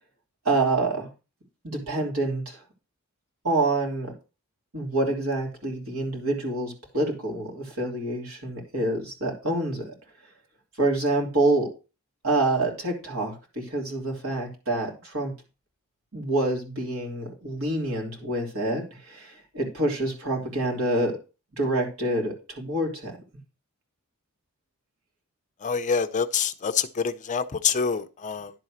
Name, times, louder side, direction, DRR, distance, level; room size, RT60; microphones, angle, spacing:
voice 1, 0.4-1.1 1.6-2.6 3.4-4.1 4.7-9.9 10.8-11.7 12.2-15.3 16.1-21.2 21.5-23.2, right 2 dB, 70° right, 3.2 m, -27 dB
voice 2, 25.6-28.5, left 6 dB, 35° left, 0.5 m, -26 dB
11.0 x 4.1 x 6.3 m
head